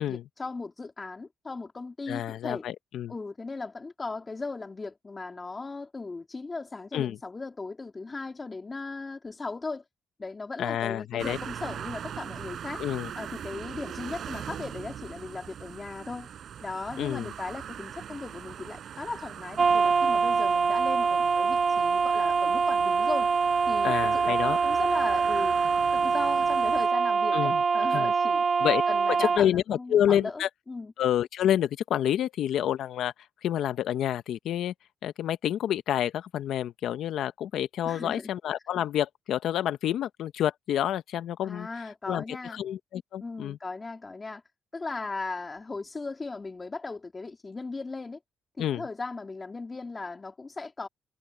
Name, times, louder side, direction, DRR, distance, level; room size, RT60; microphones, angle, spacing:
voice 1, 0.0-2.6 3.1-9.8 10.2-12.8 13.1-16.3 16.6-23.3 23.7-25.6 25.9-28.4 28.9-30.9 37.8-38.3 41.4-42.6 43.2-44.4 44.7-48.2 48.6-50.9, left 3 dB, 25° left, 3.4 m, -37 dB
voice 2, 2.1-3.1 6.9-7.2 10.6-11.4 12.8-13.1 17.0-17.3 23.8-24.6 27.3-27.6 27.9-28.1 28.6-28.8 29.2-30.5 31.0-33.1 33.4-34.7 35.0-41.7 42.1-42.2 42.5-43.6 48.6-48.8, left 10 dB, 75° left, 0.8 m, -28 dB
sound 1, 11.2-26.9, right 9 dB, 60° right, 6.0 m, -42 dB
sound 2, 19.6-29.4, right 5 dB, 40° right, 0.4 m, -24 dB
cardioid pair, 90°, 0 cm